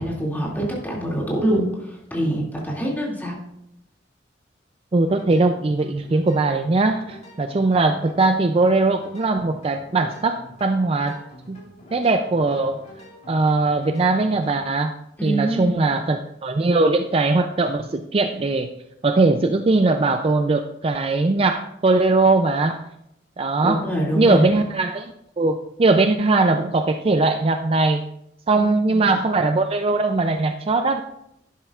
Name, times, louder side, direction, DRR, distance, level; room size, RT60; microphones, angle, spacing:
voice 1, 0.0-3.4 15.2-15.9 23.6-24.5 28.5-29.1, right 1 dB, 10° left, -4 dB, 2.4 m, -25 dB
voice 2, 4.9-11.2 11.5-11.6 11.9-12.8 13.3-14.9 15.2-18.7 19.0-22.8 23.4-23.8 24.1-28.0 28.5-31.0, right 3 dB, 30° right, 7 dB, 0.4 m, -20 dB
sound 1, 5.0-14.6, equal, 40° left, 3.8 m, -46 dB
11.0 x 11.0 x 2.4 m, 0.79 s
head